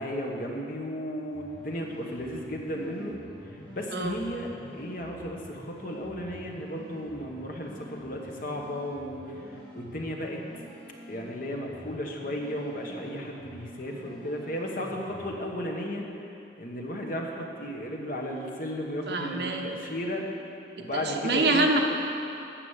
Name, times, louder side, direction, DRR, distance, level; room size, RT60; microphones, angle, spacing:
voice 1, 0.0-3.2 3.7-9.4 9.7-10.4 11.1-16.0 16.6-20.3 20.8-21.7, equal, 50° left, 0 dB, 1.3 m, -34 dB
sound 1, 1.3-15.5, equal, 10° left, 2.0 m, -47 dB
voice 2, 19.1-19.7 20.8-21.8, right 2 dB, 65° right, 2 dB, 1.0 m, -26 dB
10.0 x 7.1 x 7.4 m, 2.7 s
head